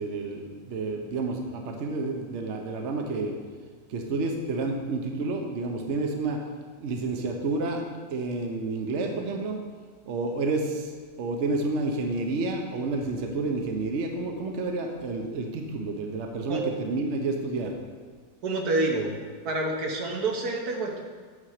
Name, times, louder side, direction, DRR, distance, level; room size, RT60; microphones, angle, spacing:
voice 1, 0.0-3.3 3.9-6.4 6.8-7.8 8.1-9.6 10.1-10.9 11.2-17.7, right 3 dB, 55° right, 3 dB, 1.0 m, -30 dB
voice 2, 18.4-19.1 19.4-21.0, right 2 dB, 70° right, 1 dB, 1.6 m, -27 dB
8.6 x 4.3 x 6.5 m, 1.5 s
omnidirectional pair, 1.7 m